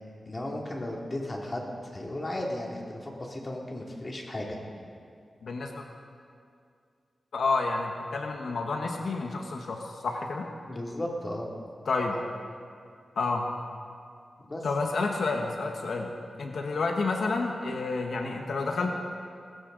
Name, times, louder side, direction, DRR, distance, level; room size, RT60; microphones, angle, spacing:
voice 1, 0.3-1.6 1.9-4.5 10.7-11.5 12.1-12.2 14.5-14.7, left 1 dB, 30° left, -1 dB, 2.6 m, -35 dB
voice 2, 5.4-5.8 7.3-10.5 11.8-12.2 13.2-13.5 14.6-16.1 16.4-18.9, left 3 dB, 75° left, 2 dB, 1.3 m, -29 dB
20.0 x 16.5 x 3.9 m, 2.3 s
wide cardioid pair, 110°, 0 cm